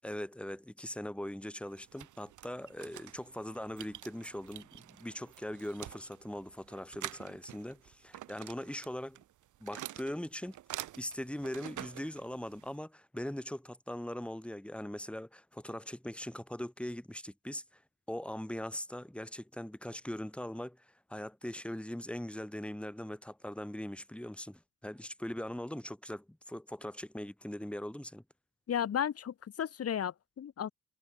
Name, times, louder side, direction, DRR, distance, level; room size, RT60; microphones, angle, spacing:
voice 1, 0.0-9.2 9.6-17.8 18.1-28.2, left 1 dB, 5° left, 6.6 m, -41 dB
sound 1, 1.7-12.8, right 13 dB, 80° right, 5.9 m, -48 dB
voice 2, 28.7-30.7, left 9 dB, 50° left, 2.0 m, -34 dB
cardioid pair, 90°, 30 cm